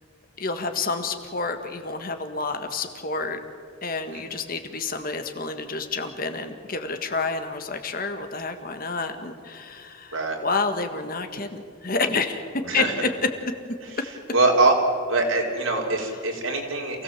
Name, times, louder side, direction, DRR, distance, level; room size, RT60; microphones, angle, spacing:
voice 1, 0.4-3.4 3.8-12.4 12.7-13.1, left 4 dB, 45° left, 7 dB, 1.6 m, -29 dB
voice 2, 14.3-14.7 15.1-17.0, right 3 dB, 80° right, 0 dB, 3.7 m, -23 dB
27.5 x 17.0 x 7.5 m, 2.1 s
head